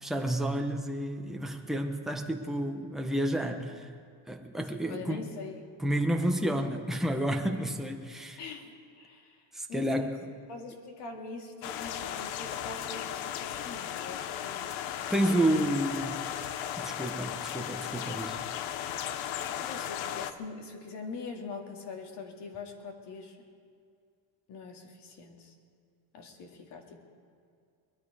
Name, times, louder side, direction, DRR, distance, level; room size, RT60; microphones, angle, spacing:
voice 1, 0.0-3.9 4.3-5.3 5.8-8.4 9.5-10.2 15.1-16.2 16.8-18.4, right 1 dB, ahead, 3 dB, 0.9 m, -30 dB
voice 2, 4.9-5.6 8.4-9.4 9.7-10.1 10.5-14.8 19.5-23.4 24.5-25.5 26.1-27.0, left 4 dB, 60° left, 3 dB, 2.3 m, -43 dB
sound 1, 11.6-20.3, left 10 dB, 80° left, 0.9 m, -36 dB
21.0 x 12.0 x 4.9 m, 2.3 s
cardioid pair, 150°, 46 cm